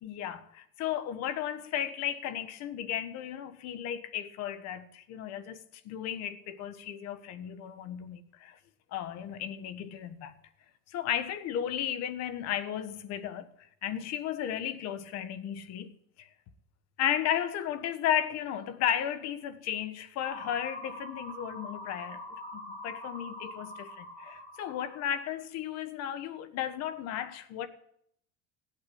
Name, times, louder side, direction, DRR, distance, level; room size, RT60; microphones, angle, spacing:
voice 1, 0.0-5.6 5.8-8.6 8.9-10.3 10.9-15.9 16.2-16.3 17.0-27.7, left 10 dB, 55° left, 1.4 m, -34 dB
sound 1, 20.2-25.2, left 1 dB, 20° left, 7.7 m, -44 dB
16.5 x 8.9 x 8.5 m
cardioid pair, 135°, 30 cm